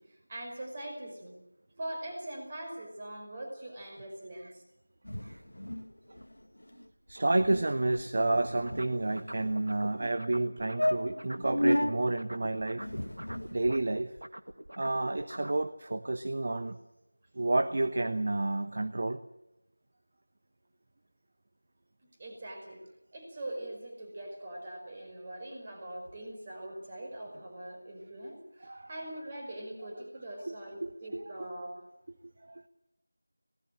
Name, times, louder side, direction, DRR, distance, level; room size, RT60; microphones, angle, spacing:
voice 1, 0.0-1.3 1.8-4.6 22.2-22.8 23.1-31.7, right 1 dB, 20° right, 1 dB, 5.5 m, -42 dB
sound 1, 5.0-5.9 6.2-6.3 6.6-6.8 7.1-7.2 7.4-7.7 8.3-9.3 10.0-10.1 10.4-10.5 10.8-11.9 12.8-13.8, left 1 dB, 65° left, 1.8 m, -32 dB
voice 2, 7.1-12.9 13.5-14.1 14.8-16.8 17.3-19.2 28.6-28.9 30.5-30.6 30.8-31.2 32.4-32.6, right 2 dB, 35° right, 9 dB, 1.1 m, -30 dB
sound 2, 7.9-11.6 11.9-15.6, right 1 dB, 60° right, 1.9 m, -44 dB
25.5 x 19.0 x 7.7 m, 0.92 s
figure-of-eight pair, 170°, 0 cm